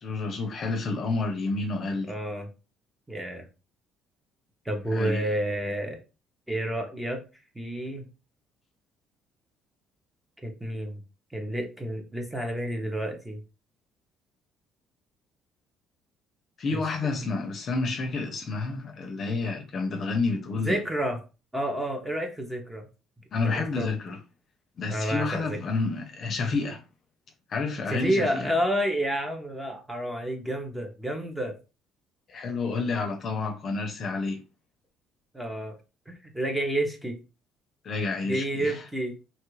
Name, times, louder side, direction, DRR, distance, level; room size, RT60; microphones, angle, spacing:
voice 1, 0.0-2.1 4.9-5.2 16.6-20.8 23.3-24.2 24.8-26.8 27.5-28.5 32.3-34.4 37.8-38.8, left 3 dB, 40° left, 0.6 m, -29 dB
voice 2, 2.1-2.5 3.1-3.5 4.7-6.0 6.5-7.2 7.5-8.1 10.4-11.0 11.3-13.4 16.7-16.8 17.2-17.3 20.6-21.2 21.5-22.9 23.6-23.9 24.9-25.6 27.9-31.6 35.3-35.8 36.1-37.2 38.2-39.2, right 1 dB, 10° right, 0.6 m, -30 dB
3.0 x 2.3 x 3.1 m
cardioid pair, 145°, 0 cm